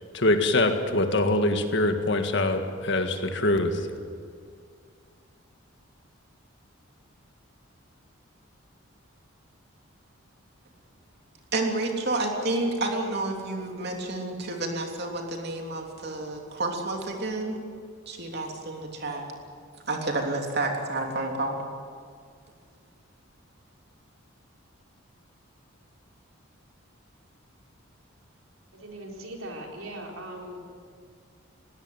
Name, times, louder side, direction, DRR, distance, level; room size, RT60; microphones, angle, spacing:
voice 1, 0.1-3.9, left 2 dB, 55° left, 6 dB, 1.8 m, -24 dB
voice 2, 11.5-17.6 18.1-19.2 19.9-21.6, right 2 dB, 50° right, 2 dB, 3.2 m, -30 dB
voice 3, 28.7-30.6, right 1 dB, 80° right, 1 dB, 4.0 m, -39 dB
20.5 x 17.0 x 9.5 m, 2.1 s
head